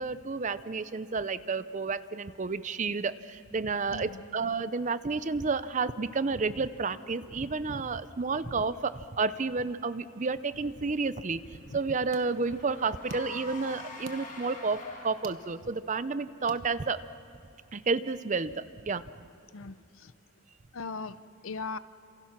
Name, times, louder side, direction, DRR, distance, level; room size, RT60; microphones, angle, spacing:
voice 1, 0.0-11.4 11.7-17.0 17.7-19.1, right 4 dB, 35° right, 14 dB, 0.6 m, -31 dB
voice 2, 3.9-4.2 19.5-20.1 20.7-21.8, left 4 dB, 70° left, 14 dB, 0.7 m, -39 dB
Car / Engine, 10.4-15.4, left 2 dB, 40° left, 5.3 m, -46 dB
sound 1, 11.6-17.3, right 3 dB, 60° right, 1.1 m, -52 dB
27.5 x 27.5 x 5.9 m, 2.4 s
head